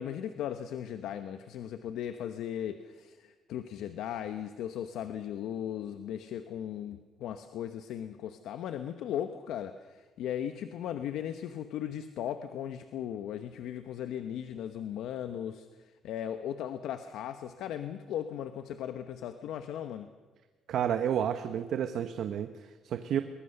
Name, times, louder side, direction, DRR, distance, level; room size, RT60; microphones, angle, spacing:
voice 1, 0.0-9.8 10.2-15.7 16.0-20.1, left 10 dB, 80° left, 9 dB, 1.0 m, -37 dB
voice 2, 20.7-23.2, right 9 dB, 60° right, 8 dB, 1.0 m, -31 dB
22.5 x 21.0 x 6.7 m, 1.3 s
cardioid pair, 155°, 0 cm